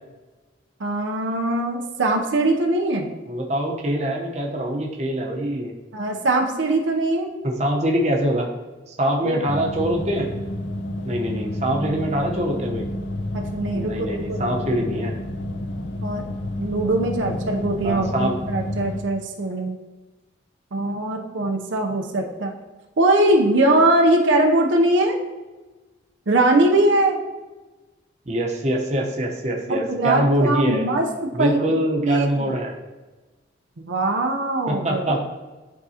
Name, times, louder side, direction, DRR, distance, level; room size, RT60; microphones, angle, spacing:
voice 1, 0.8-3.1 5.9-7.3 9.2-9.4 11.7-11.8 13.3-14.5 16.0-16.3 16.6-19.8 20.7-22.5 23.0-25.2 26.3-27.2 29.7-32.5 33.8-35.2, right 2 dB, 80° right, 2 dB, 0.7 m, -21 dB
voice 2, 3.3-5.7 7.4-8.5 8.9-10.3 11.0-12.8 13.7-15.2 17.8-18.4 28.3-30.9 31.3-32.7 34.7-35.2, right 1 dB, 35° right, 0 dB, 0.9 m, -24 dB
sound 1, 9.5-19.0, left 1 dB, 70° left, 0.6 m, -30 dB
11.0 x 3.7 x 2.9 m, 1.2 s
head